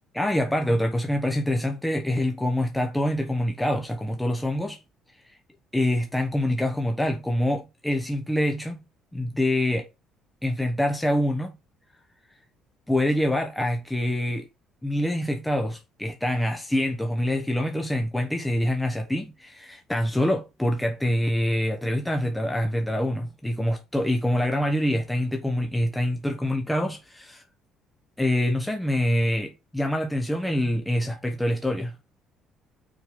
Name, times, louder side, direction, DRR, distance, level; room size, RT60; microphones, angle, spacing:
voice 1, 0.1-4.8 5.7-8.8 9.1-9.9 10.4-11.5 12.9-14.5 14.8-27.4 28.2-32.0, left 1 dB, 5° left, 1.0 m, -25 dB
6.1 x 4.7 x 4.9 m
cardioid pair, 145°, 0 cm